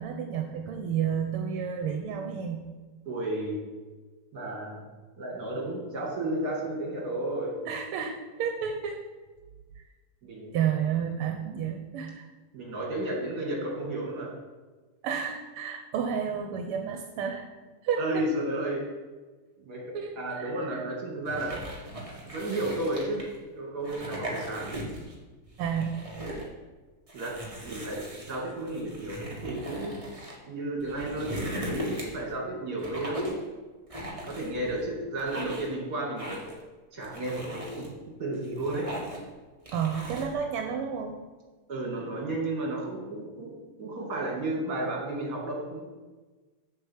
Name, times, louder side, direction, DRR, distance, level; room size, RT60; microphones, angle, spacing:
voice 1, 0.0-2.6 7.7-9.0 9.8-9.9 10.5-12.2 15.0-17.5 17.8-18.3 19.9-20.5 25.6-26.1 39.7-41.1, right 7 dB, 80° right, 3 dB, 1.7 m, -31 dB
voice 2, 3.0-3.7 4.3-4.9 5.2-7.6 10.2-10.6 11.5-11.6 12.5-14.4 18.0-18.9 19.6-21.6 22.2-24.8 27.1-30.0 30.4-33.3 34.2-36.3 36.9-37.9 38.2-38.9 41.7-45.8, right 1 dB, 45° right, -1 dB, 2.9 m, -33 dB
sound 1, 21.2-23.4 23.8-25.2 25.5-26.5 27.1-30.3 30.8-32.3 32.8-33.5 33.9-34.8 35.2-35.7 36.2-36.6 37.0-37.9 38.3-39.3 39.7-40.3, equal, 15° right, 1.7 m, -38 dB
7.6 x 6.1 x 7.3 m, 1.3 s
omnidirectional pair, 2.4 m